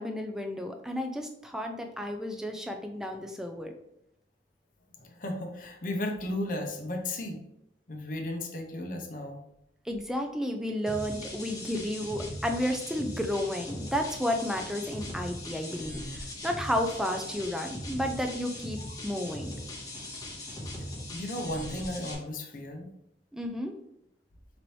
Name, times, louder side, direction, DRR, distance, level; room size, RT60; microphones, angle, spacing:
voice 1, 0.0-3.7 9.9-19.5 23.3-23.7, equal, 5° right, 4 dB, 0.4 m, -32 dB
voice 2, 5.0-7.4 7.9-9.4 18.8-18.9 21.1-22.9, left 1 dB, 50° left, 2 dB, 0.6 m, -35 dB
sound 1, 10.9-22.1, left 1 dB, 20° left, 0.9 m, -40 dB
4.0 x 3.0 x 3.1 m, 0.79 s
head